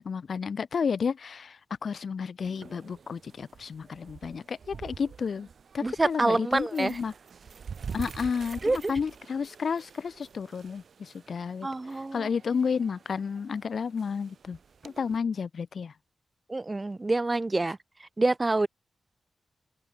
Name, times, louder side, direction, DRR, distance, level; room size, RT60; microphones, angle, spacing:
voice 1, 0.0-5.5 5.7-7.1 7.9-14.6 14.8-15.9, left 6 dB, 65° left, 3.1 m, -31 dB
sound 1, 2.4-15.2, right 6 dB, 65° right, 2.7 m, -46 dB
voice 2, 5.8-7.0 8.6-8.9 11.6-12.3 16.5-17.8 18.2-18.7, right 2 dB, 25° right, 0.9 m, -26 dB
open air
cardioid pair, 90°, 0 cm